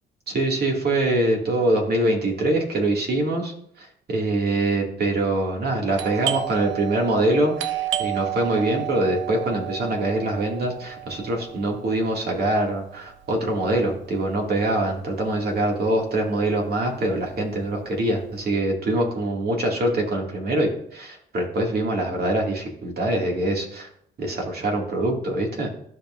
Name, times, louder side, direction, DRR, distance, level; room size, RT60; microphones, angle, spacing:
voice 1, 0.3-7.5 8.0-23.9 24.2-25.7, right 1 dB, 55° right, 0 dB, 2.2 m, -24 dB
Doorbell, 5.9-15.3 15.6-15.7 16.3-16.7 17.0-18.4, right 13 dB, 75° right, 0.7 m, -32 dB
14.0 x 5.5 x 2.5 m, 0.69 s
cardioid pair, 90°, 20 cm